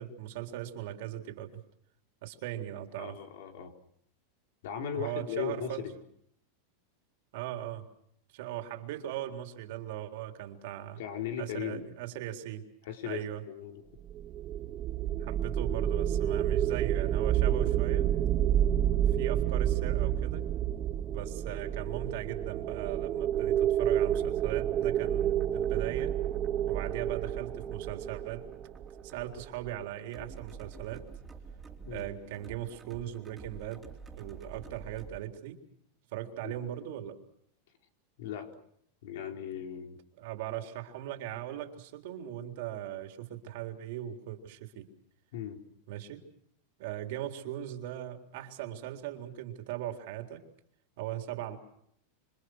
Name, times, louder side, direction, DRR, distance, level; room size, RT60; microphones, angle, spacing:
voice 1, 0.0-1.6 2.2-3.2 4.9-5.8 7.3-7.9 8.3-11.0 11.4-12.6 13.0-13.4 15.2-18.1 19.0-20.5 21.1-26.2 26.7-28.5 29.0-31.1 31.9-35.6 36.1-37.2 40.2-44.9 45.9-46.2 46.8-50.4 51.0-51.6, right 12 dB, 65° right, 5 dB, 3.7 m, -39 dB
voice 2, 3.0-3.7 4.6-5.9 11.0-11.9 12.8-13.8 17.9-18.1 31.8-32.1 36.4-36.6 38.2-38.5 39.0-40.0 45.3-45.6, left 9 dB, 70° left, 4 dB, 4.4 m, -38 dB
sound 1, 14.1-29.3, right 11 dB, 30° right, 1.0 m, -29 dB
sound 2, 23.2-35.2, right 5 dB, 15° right, 3.6 m, -50 dB
27.5 x 25.5 x 6.4 m, 0.70 s
supercardioid pair, 135°, 0 cm